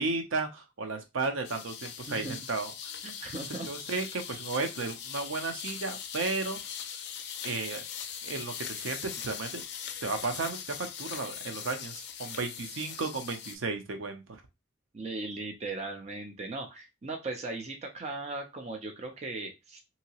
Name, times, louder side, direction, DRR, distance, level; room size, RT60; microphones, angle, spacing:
voice 1, 0.0-2.7 3.7-6.6 7.4-7.8 8.2-9.6 10.0-14.4, right 3 dB, 80° right, 6 dB, 0.6 m, -34 dB
sound 1, 1.4-13.6, left 8 dB, 55° left, 0.4 m, -40 dB
voice 2, 3.0-3.7 14.9-19.8, right 2 dB, 35° right, 3 dB, 0.5 m, -38 dB
2.8 x 2.8 x 2.8 m, 0.23 s
head